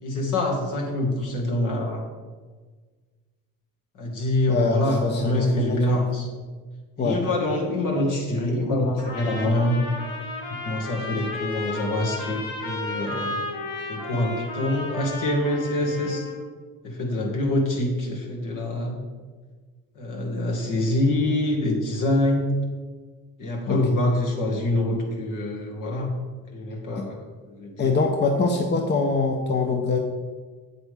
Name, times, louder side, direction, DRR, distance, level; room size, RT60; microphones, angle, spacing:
voice 1, 0.0-2.1 4.0-6.3 7.0-9.8 10.6-13.4 13.9-16.2 16.8-19.0 20.0-22.5 23.4-26.1 26.5-27.2 27.5-27.9, left 1 dB, 65° left, -1 dB, 2.1 m, -25 dB
voice 2, 4.5-6.0 7.0-7.2 23.7-23.8 27.0-27.1 27.8-30.0, left 4 dB, 30° left, 3 dB, 0.8 m, -24 dB
Trumpet, 9.0-16.4, left 2 dB, 90° left, 1.9 m, -33 dB
8.4 x 7.7 x 3.6 m, 1.4 s
cardioid pair, 100°, 34 cm